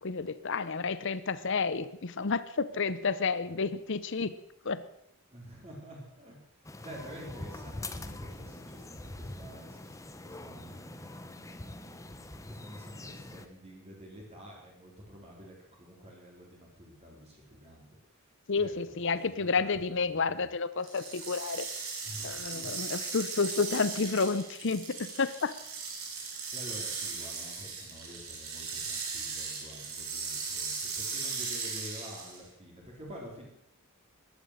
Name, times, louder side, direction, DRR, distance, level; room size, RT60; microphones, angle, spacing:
voice 1, 0.0-4.3 4.6-4.8 18.5-21.7 22.2-25.5, left 4 dB, 55° left, 15 dB, 0.7 m, -30 dB
voice 2, 5.3-18.7 19.0-20.5 22.0-22.9 26.5-33.5, equal, 30° right, -2 dB, 3.8 m, -49 dB
sound 1, 6.6-13.5, left 2 dB, 15° left, 0.8 m, -44 dB
sound 2, 20.8-32.5, right 5 dB, 70° right, 3.5 m, -38 dB
14.5 x 11.0 x 6.5 m, 0.77 s
head